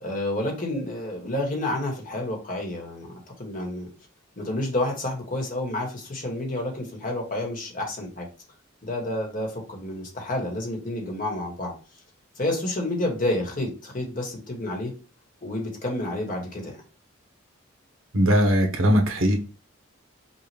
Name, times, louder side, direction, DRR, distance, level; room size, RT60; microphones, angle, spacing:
voice 1, 0.0-3.9 4.4-8.3 8.8-11.7 12.4-14.9 15.4-16.8, left 1 dB, 40° left, 1.4 m, -29 dB
voice 2, 18.1-19.4, equal, 80° right, 1.1 m, -20 dB
5.5 x 2.4 x 3.4 m
head